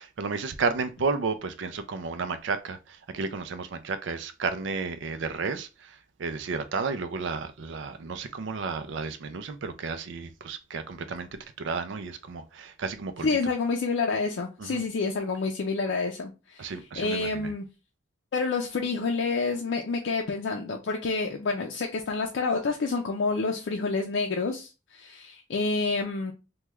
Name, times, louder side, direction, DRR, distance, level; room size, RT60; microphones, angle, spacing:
voice 1, 0.0-5.9 6.2-11.3 11.6-13.3 14.6-14.8 16.6-17.5, right 4 dB, 65° right, 0.4 m, -32 dB
voice 2, 13.2-17.7 18.3-26.3, left 4 dB, 65° left, 0.4 m, -28 dB
3.4 x 2.2 x 3.0 m
head